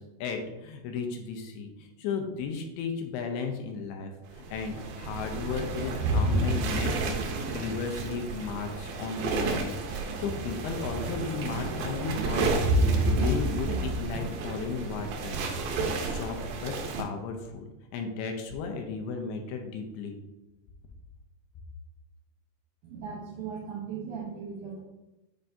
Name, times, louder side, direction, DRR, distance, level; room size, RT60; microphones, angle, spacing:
voice 1, 0.0-7.3 7.5-12.8 13.1-20.1, left 5 dB, 80° left, 4 dB, 2.6 m, -35 dB
sound 1, 4.4-17.0, right 2 dB, 85° right, 1.8 m, -30 dB
voice 2, 22.8-24.8, right 6 dB, 70° right, -4 dB, 1.9 m, -38 dB
9.5 x 4.4 x 2.7 m, 1.0 s
omnidirectional pair, 4.8 m